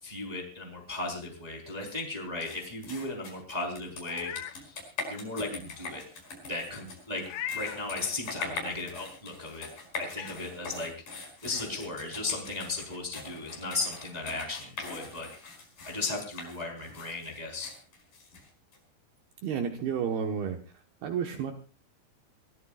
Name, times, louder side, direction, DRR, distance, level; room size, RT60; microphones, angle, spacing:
voice 1, 0.0-6.0 6.5-9.7 10.0-10.9 11.4-15.5 15.8-17.7, left 3 dB, 10° right, 1 dB, 3.5 m, -36 dB
sound 1, 2.4-18.8, left 3 dB, 50° left, 6.5 m, -42 dB
Meow, 4.0-4.6 5.1-5.2 7.2-7.8 9.4-9.5 10.1-10.4, left 10 dB, 70° left, 2.6 m, -38 dB
voice 2, 19.4-20.6 21.0-21.5, right 7 dB, 70° right, 4 dB, 3.0 m, -31 dB
26.5 x 17.5 x 2.4 m, 0.33 s
omnidirectional pair, 5.1 m